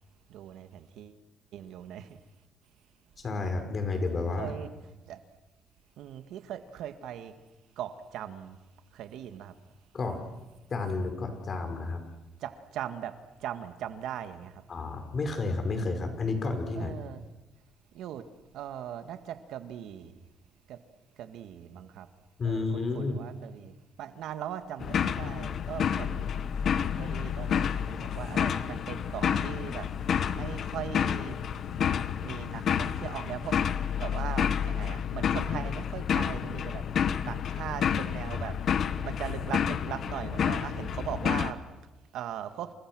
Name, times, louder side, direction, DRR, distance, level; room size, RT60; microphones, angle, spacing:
voice 1, 0.3-1.2 1.5-2.2 4.4-4.7 5.1-5.2 6.0-7.3 7.8-8.6 8.9-9.5 12.4-14.6 16.8-17.2 17.9-18.3 18.5-20.3 20.7-20.8 21.2-22.1 22.4-26.4 27.0-29.9 30.2-31.4 32.2-33.6 34.0-38.6 39.0-41.6 42.1-42.7, right 10 dB, 85° right, 9 dB, 1.9 m, -39 dB
voice 2, 3.2-4.5 9.9-10.2 10.7-12.0 14.7-17.0 22.4-23.2 24.0-24.1 38.3-38.5, left 3 dB, 45° left, 6 dB, 5.6 m, -31 dB
sound 1, 24.8-41.5, left 8 dB, 65° left, 1.3 m, -30 dB
29.0 x 27.0 x 6.3 m, 1.1 s
cardioid pair, 90°, 0 cm